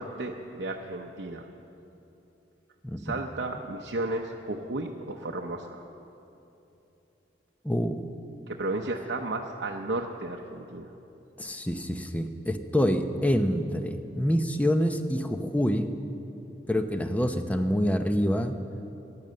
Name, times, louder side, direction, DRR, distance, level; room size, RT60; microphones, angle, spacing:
voice 1, 0.0-1.5 3.0-5.8 8.5-10.9, right 2 dB, 90° right, 1 dB, 0.8 m, -33 dB
voice 2, 7.6-8.0 11.4-15.9 16.7-18.5, equal, 10° left, 7 dB, 0.7 m, -26 dB
15.5 x 11.0 x 7.6 m, 3.0 s
head